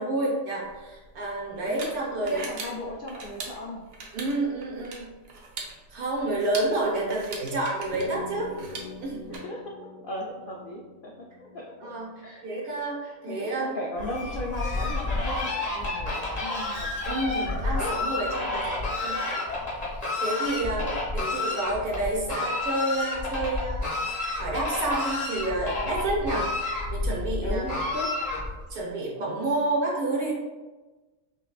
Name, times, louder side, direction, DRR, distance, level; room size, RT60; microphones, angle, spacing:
voice 1, 0.0-2.4 4.1-5.1 5.9-8.5 9.0-9.3 11.8-13.8 17.1-19.4 19.9-20.8 21.1-26.5 26.9-27.6 28.7-30.3, right 2 dB, 90° right, -3 dB, 1.5 m, -29 dB
sound 1, 0.7-9.4, right 3 dB, 75° right, 1.1 m, -41 dB
voice 2, 2.2-3.8 7.0-7.3 9.3-9.8 10.0-11.1 11.4-11.9 12.2-12.7 13.1-17.5 17.7-19.2 20.5-21.0 27.4-28.1, left 1 dB, 80° left, -2 dB, 0.4 m, -37 dB
sound 2, 7.9-12.5, left 2 dB, 55° left, 0.8 m, -44 dB
Fowl, 14.0-28.7, left 2 dB, 30° left, 1.1 m, -30 dB
5.5 x 2.3 x 2.3 m, 1.2 s
omnidirectional pair, 1.5 m